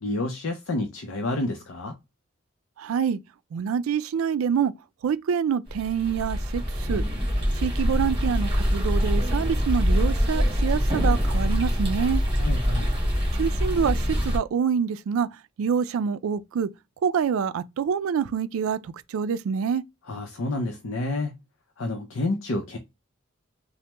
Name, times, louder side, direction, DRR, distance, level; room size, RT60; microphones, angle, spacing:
voice 1, 0.0-1.9 12.4-13.0 20.1-21.3 21.8-22.8, left 2 dB, 75° left, 0.5 m, -29 dB
voice 2, 2.8-3.2 3.5-4.7 5.0-7.0 7.5-12.2 13.4-15.3 15.6-16.7 17.0-19.8, right 7 dB, 90° right, 0.3 m, -26 dB
sound 1, 5.7-14.4, equal, 25° right, 1.2 m, -24 dB
3.3 x 2.0 x 2.9 m
head